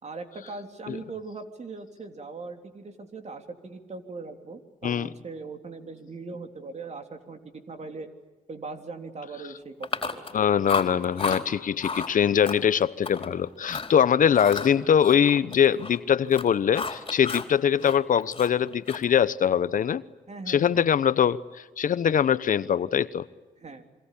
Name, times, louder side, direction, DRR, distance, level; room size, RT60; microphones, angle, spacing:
voice 1, 0.0-8.1 8.5-10.2 20.3-20.8 23.6-23.8, right 3 dB, 50° right, 6 dB, 3.4 m, -40 dB
Chewing mastication, 9.8-10.4 10.7-11.4 11.8-12.1 12.4-13.3 13.6-13.9 14.3-17.5 17.8-19.2, left 4 dB, 35° left, 4.0 m, -33 dB
voice 2, 10.3-20.0 20.5-21.4 21.8-23.2, left 8 dB, 65° left, 16 dB, 0.9 m, -22 dB
27.0 x 24.0 x 8.5 m, 1.2 s
cardioid pair, 60°, 15 cm